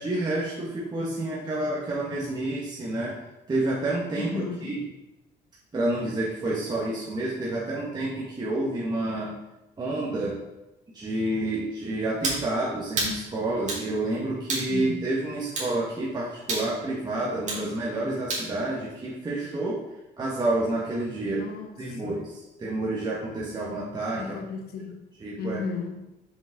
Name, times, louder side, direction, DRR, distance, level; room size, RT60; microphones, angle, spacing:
voice 1, 0.0-3.2 3.5-4.8 5.7-9.3 9.8-10.4 10.9-19.8 20.2-21.4 21.8-24.4 25.2-25.6, right 2 dB, 25° right, -5 dB, 1.3 m, -29 dB
voice 2, 4.1-4.8 14.7-15.1 21.3-22.2 24.1-25.1 25.4-26.1, left 4 dB, 70° left, 5 dB, 1.0 m, -35 dB
sound 1, 12.2-12.4 13.0-13.2 13.7-13.9 14.5-14.7 15.6-15.7 16.5-16.7 17.5-17.7 18.3-18.5, right 2 dB, 45° right, 2.2 m, -28 dB
6.0 x 5.1 x 3.6 m, 0.98 s
cardioid pair, 110°, 17 cm